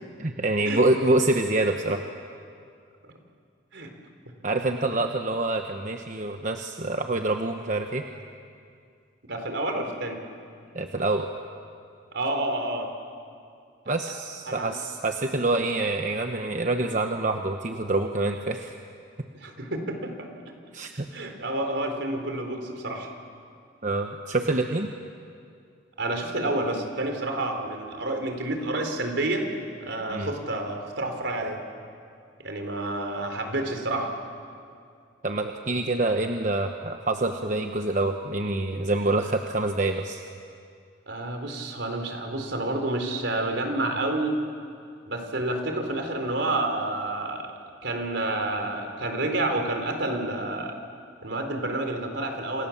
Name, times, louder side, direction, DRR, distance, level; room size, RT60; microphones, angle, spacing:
voice 1, 0.2-2.0 4.4-8.0 10.7-11.3 13.9-18.7 20.7-21.1 23.8-24.9 30.1-30.3 35.2-40.2, right 2 dB, 40° right, 4 dB, 1.1 m, -26 dB
voice 2, 9.3-10.2 12.1-12.9 13.9-14.0 14.5-14.7 19.4-20.3 21.1-23.1 26.0-29.5 29.8-31.6 32.4-34.1 41.1-44.4 45.1-47.5 47.8-50.8 51.2-52.7, right 2 dB, 70° right, 4 dB, 4.0 m, -29 dB
29.0 x 27.5 x 7.3 m, 2.4 s
head